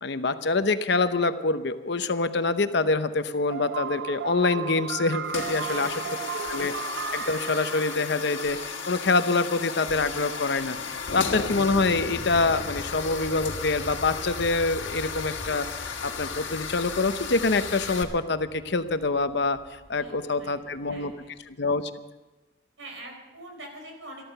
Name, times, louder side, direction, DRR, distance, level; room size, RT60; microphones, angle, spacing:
voice 1, 0.0-5.9 6.5-6.7 7.1-8.6 8.9-15.7 16.0-19.6 19.9-21.1 21.5-21.9, left 3 dB, 60° left, 11 dB, 0.8 m, -25 dB
sound 1, 3.5-9.3, right 7 dB, 60° right, 0.5 m, -35 dB
sound 2, 5.2-18.0, left 6 dB, 80° left, 1.7 m, -35 dB
voice 2, 5.6-6.5 20.0-21.3 22.8-24.3, right 1 dB, 90° right, 3 dB, 4.5 m, -45 dB
Aircraft, 10.7-21.2 21.7-21.8, left 1 dB, 10° right, 3.8 m, -43 dB
13.5 x 13.5 x 6.7 m, 1.1 s
head